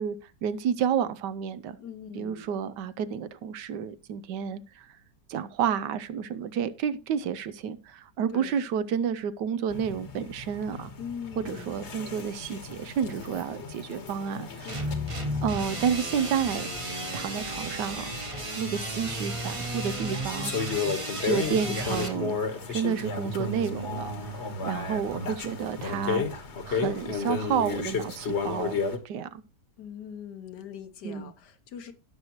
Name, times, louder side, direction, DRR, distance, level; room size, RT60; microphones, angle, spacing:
voice 1, 0.0-1.8 2.1-4.8 5.3-10.9 11.4-14.9 15.4-16.7 17.1-18.0 18.6-20.8 21.2-22.4 22.7-26.2 26.7-29.4 31.0-31.3, right 8 dB, 75° right, 1.3 m, -30 dB
voice 2, 1.8-2.5 8.3-8.5 11.0-11.7 14.6-15.2 24.5-24.9 29.8-31.9, left 8 dB, 70° left, 1.5 m, -42 dB
sound 1, 9.7-29.0, left 4 dB, 40° left, 1.4 m, -34 dB
sound 2, 14.7-22.1, right 1 dB, 20° right, 1.0 m, -34 dB
17.5 x 6.5 x 3.0 m
omnidirectional pair, 1.9 m